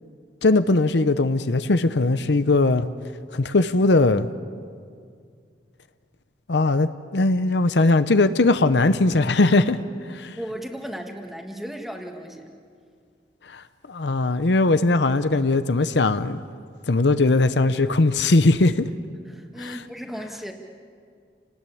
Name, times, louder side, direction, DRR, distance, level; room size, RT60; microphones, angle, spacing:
voice 1, 0.4-2.9 3.3-4.3 6.5-9.8 10.1-10.4 13.5-16.4 16.9-18.9 19.6-19.8, left 2 dB, 80° left, 12 dB, 0.8 m, -20 dB
voice 2, 10.4-12.5 19.3-20.5, equal, ahead, 2 dB, 1.9 m, -35 dB
29.5 x 19.0 x 8.6 m, 2.2 s
head